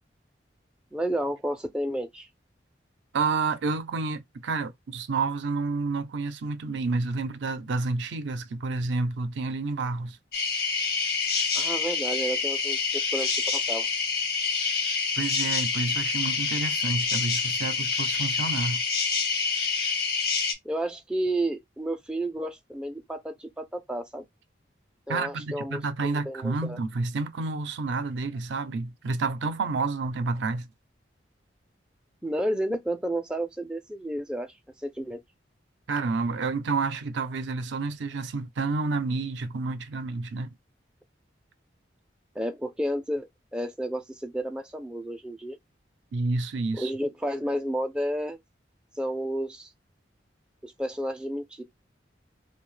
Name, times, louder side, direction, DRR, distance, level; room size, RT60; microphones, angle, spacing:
voice 1, 0.9-2.3 11.5-13.9 20.6-24.3 25.1-26.8 32.2-34.5 34.8-35.2 42.4-45.6 46.8-48.4 49.0-49.7 50.6-51.6, right 1 dB, 5° right, 0.3 m, -31 dB
voice 2, 3.1-10.2 15.2-18.8 25.1-30.7 35.9-40.5 46.1-46.9, right 3 dB, 75° right, 0.4 m, -29 dB
sound 1, 10.3-20.5, left 5 dB, 50° left, 0.6 m, -27 dB
2.6 x 2.2 x 3.1 m
head